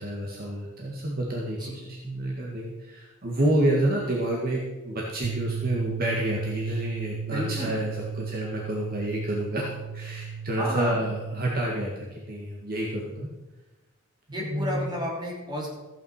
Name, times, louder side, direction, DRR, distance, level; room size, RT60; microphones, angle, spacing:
voice 1, 0.0-13.3 14.4-14.9, right 1 dB, 45° right, -2 dB, 1.9 m, -29 dB
sound 1, 5.2-11.5, right 6 dB, 75° right, 0.4 m, -34 dB
voice 2, 7.2-7.8 10.6-11.0 14.3-15.7, equal, 20° right, -3 dB, 3.3 m, -32 dB
14.5 x 8.9 x 4.9 m, 1.1 s
head